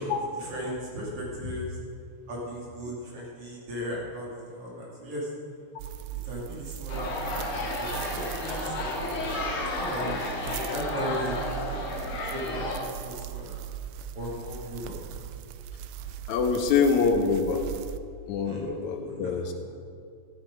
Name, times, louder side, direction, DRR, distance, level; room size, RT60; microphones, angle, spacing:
voice 1, 0.0-1.8 2.3-5.3 6.1-7.1 7.4-9.0 9.7-11.8 12.3-13.6 14.1-15.0 18.4-18.7 19.0-19.5, equal, 50° right, -4 dB, 3.4 m, -37 dB
sound 1, 5.8-18.0, right 10 dB, 80° right, 1.6 m, -39 dB
sound 2, 6.9-12.8, left 2 dB, 55° left, 2.4 m, -32 dB
voice 2, 16.3-17.7 18.3-19.5, left 5 dB, 80° left, 6 dB, 2.2 m, -25 dB
14.0 x 9.2 x 4.9 m, 2.3 s
omnidirectional pair, 3.3 m